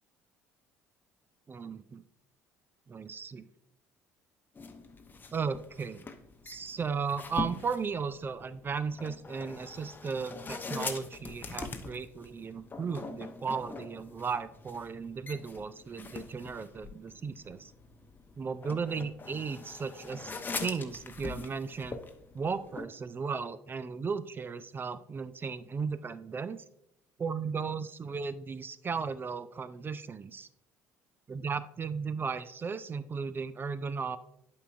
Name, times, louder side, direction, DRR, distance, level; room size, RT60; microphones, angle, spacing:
voice 1, 1.5-2.0 2.9-3.5 5.3-6.0 6.4-17.7 18.4-22.0 22.3-26.6 27.2-30.5 31.3-34.2, right 5 dB, 25° right, 15 dB, 0.4 m, -35 dB
sound 1, 4.5-22.8, left 4 dB, 25° left, 0.7 m, -43 dB
11.5 x 4.8 x 2.5 m, 0.78 s
figure-of-eight pair, 55°, 8 cm